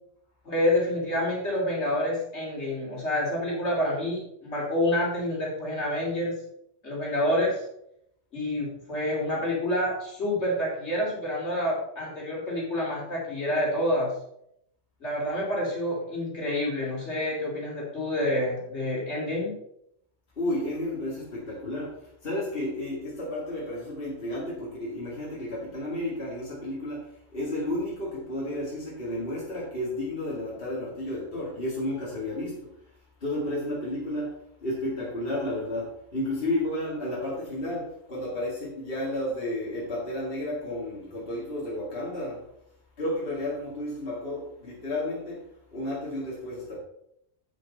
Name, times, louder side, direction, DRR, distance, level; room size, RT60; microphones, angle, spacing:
voice 1, 0.4-6.3 6.8-7.6 8.3-14.1 15.0-19.5, left 1 dB, 75° left, -3 dB, 3.4 m, -28 dB
voice 2, 20.4-32.7 33.2-42.5 43.0-46.8, left 1 dB, 55° left, -6 dB, 2.6 m, -32 dB
8.2 x 8.1 x 4.2 m, 0.75 s
omnidirectional pair, 1.2 m